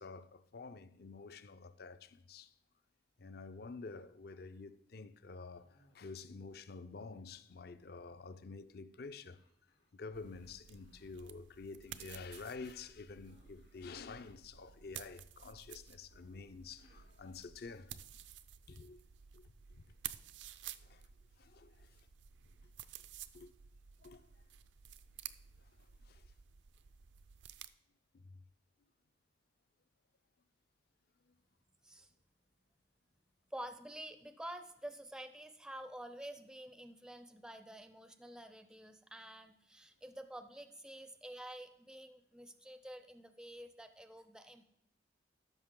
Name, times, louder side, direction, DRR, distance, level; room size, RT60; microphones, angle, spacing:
voice 1, 0.0-2.5 3.2-9.4 9.9-18.0 18.7-19.0 19.3-19.5 20.8-21.0 21.4-22.0 23.3-23.5 24.0-24.3 25.6-25.7 26.0-26.3 28.1-28.4, left 4 dB, 55° left, 0.5 m, -49 dB
Cough, 5.5-6.4 6.6-8.7 9.2-11.2 13.2-15.2 16.4-17.7, left 1 dB, 80° left, 3.4 m, -71 dB
sound 1, 10.1-27.7, right 10 dB, 75° right, 0.5 m, -53 dB
voice 2, 33.5-44.7, right 1 dB, 5° right, 0.4 m, -49 dB
13.5 x 6.0 x 3.7 m
head